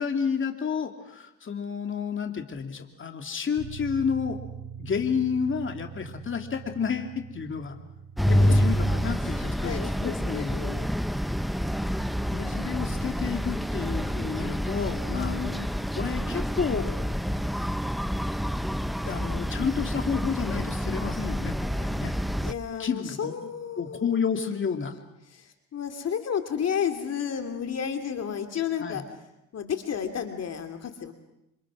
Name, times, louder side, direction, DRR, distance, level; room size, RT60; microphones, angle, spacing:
voice 1, 0.0-4.4 4.8-7.8 8.5-10.6 12.3-15.4 15.9-17.0 19.0-22.1 22.8-23.5 23.8-24.9 28.8-29.0, left 6 dB, 40° left, 5 dB, 2.6 m, -30 dB
sound 1, 3.6-18.0, right 7 dB, 45° right, 3.2 m, -46 dB
sound 2, 8.2-22.5, equal, ahead, 0.9 m, -28 dB
voice 2, 8.3-8.6 9.2-10.9 15.1-15.7 22.4-24.5 25.3-29.0 29.5-31.1, left 8 dB, 55° left, 6 dB, 2.6 m, -32 dB
27.0 x 27.0 x 6.2 m, 0.86 s
cardioid pair, 90°, 30 cm